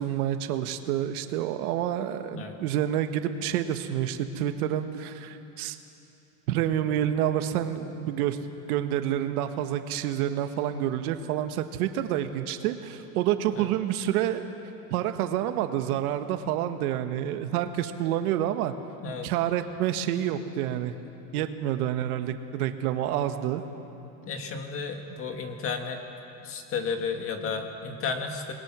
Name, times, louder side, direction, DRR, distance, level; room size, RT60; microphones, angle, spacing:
voice 1, 0.0-5.8 6.5-8.4 8.7-14.4 14.9-18.7 19.2-20.9 21.3-23.6, right 11 dB, 65° right, 8 dB, 1.4 m, -28 dB
voice 2, 24.2-26.0 26.4-28.5, left 5 dB, 30° left, 5 dB, 1.8 m, -33 dB
27.5 x 20.5 x 6.1 m, 3.0 s
supercardioid pair, 160°, 47 cm